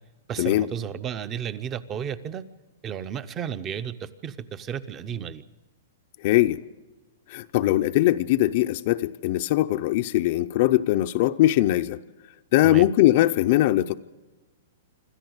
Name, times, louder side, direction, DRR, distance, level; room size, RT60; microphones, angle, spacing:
voice 1, 0.3-2.4 2.8-5.4 12.6-12.9, right 8 dB, 20° right, 14 dB, 0.7 m, -33 dB
voice 2, 6.2-6.6 7.3-12.0 12.5-14.0, left 15 dB, 45° left, 8 dB, 0.6 m, -21 dB
26.5 x 13.5 x 8.0 m, 1.2 s
hypercardioid pair, 160°, 0 cm